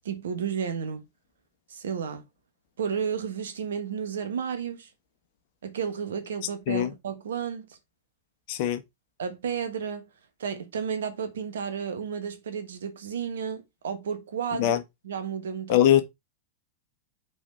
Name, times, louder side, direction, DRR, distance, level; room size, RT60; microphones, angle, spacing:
voice 1, 0.0-1.1 1.7-2.2 2.8-4.9 5.6-7.8 9.2-10.1 10.4-14.7 15.0-15.8, right 7 dB, 65° right, 1.3 m, -32 dB
voice 2, 8.5-8.8 14.6-14.8 15.7-16.0, left 11 dB, 45° left, 1.2 m, -21 dB
5.1 x 4.1 x 5.1 m
figure-of-eight pair, 90°, 0 cm